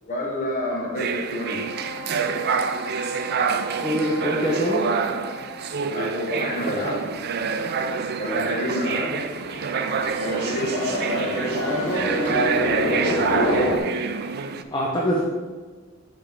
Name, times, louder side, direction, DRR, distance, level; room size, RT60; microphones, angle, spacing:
voice 1, 0.0-1.6 5.9-7.1 8.2-9.2 10.1-12.1 12.6-13.6, equal, 35° left, -2 dB, 1.5 m, -28 dB
sound 1, 0.9-14.6, right 6 dB, 45° right, 0.4 m, -27 dB
Wind instrument woodwind instrument, 1.4-6.0, left 1 dB, 15° right, 0.9 m, -38 dB
voice 2, 3.8-4.9 14.7-15.2, equal, 20° left, -3 dB, 0.7 m, -23 dB
sound 2, 6.8-13.8, left 1 dB, 80° left, 1.0 m, -28 dB
8.2 x 5.0 x 3.6 m, 1.4 s
head